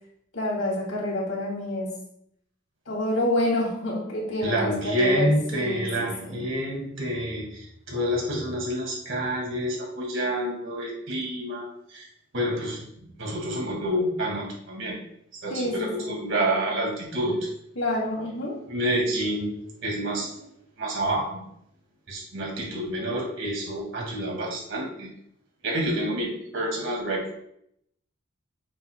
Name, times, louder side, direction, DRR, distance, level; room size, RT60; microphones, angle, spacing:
voice 1, 0.3-1.9 2.9-6.4 15.5-16.2 17.8-18.6, left 1 dB, 85° left, -2 dB, 2.8 m, -28 dB
voice 2, 4.4-12.1 12.3-12.9 13.2-15.0 15.3-17.4 18.7-19.5 19.8-20.5 20.8-21.4 22.1-25.1 25.6-27.3, equal, 65° right, -2 dB, 2.2 m, -28 dB
9.2 x 5.7 x 2.3 m, 0.72 s
head